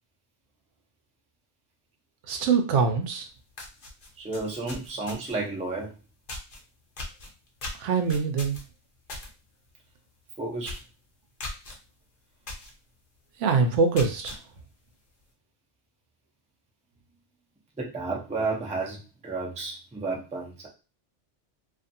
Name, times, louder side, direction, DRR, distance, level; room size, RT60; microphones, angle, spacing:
voice 1, 2.3-3.3 7.8-8.6 13.4-14.3, right 5 dB, 80° right, 6 dB, 0.9 m, -23 dB
sound 1, 3.1-3.2 3.5-5.4 6.3-6.6 7.0-9.3 9.6-9.9 10.2-10.3 10.6-10.9 11.4-11.7 12.5-12.7 13.2-13.3 13.7-14.4, left 2 dB, 50° left, 0.8 m, -39 dB
voice 2, 4.2-5.9 10.4-10.8 17.8-20.7, right 3 dB, 10° right, -2 dB, 0.4 m, -32 dB
2.6 x 2.5 x 2.6 m, 0.32 s
omnidirectional pair, 1.2 m